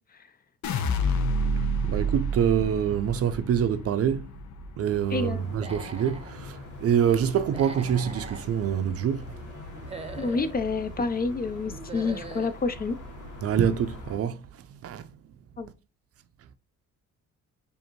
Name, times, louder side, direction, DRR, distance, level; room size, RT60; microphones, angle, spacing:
sound 1, 0.6-6.8 7.2-7.8, equal, 70° left, 0.7 m, -30 dB
voice 1, 1.8-4.3 4.8-9.3 13.4-14.4 14.8-15.1, right 8 dB, 50° right, 0.5 m, -25 dB
sound 2, 4.8-14.2, left 1 dB, 85° left, 1.2 m, -43 dB
voice 2, 5.1-5.4 10.2-13.0 15.6-15.7, left 4 dB, 30° left, 0.4 m, -28 dB
Human voice / Animal, 5.5-6.3 7.4-8.4 9.7-10.6 11.7-12.6, right 3 dB, 20° right, 0.7 m, -41 dB
5.0 x 2.6 x 2.9 m
cardioid pair, 90°, 30 cm